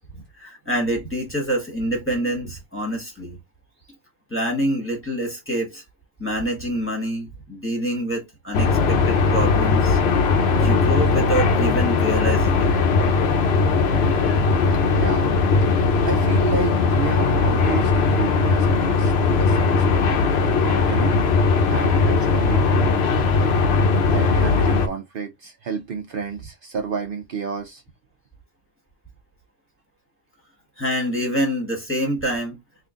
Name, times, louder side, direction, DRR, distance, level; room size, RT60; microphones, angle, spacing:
voice 1, 0.4-3.4 4.3-5.8 6.2-10.0 10.6-12.7 30.8-32.6, equal, 10° left, 1.4 m, -26 dB
sound 1, 8.5-24.9, left 4 dB, 70° left, 0.9 m, -19 dB
voice 2, 14.9-15.3 16.0-19.1 19.4-20.1 20.6-21.2 21.7-22.9 24.1-27.8, right 6 dB, 60° right, 0.7 m, -31 dB
3.8 x 2.4 x 3.6 m
omnidirectional pair, 1.1 m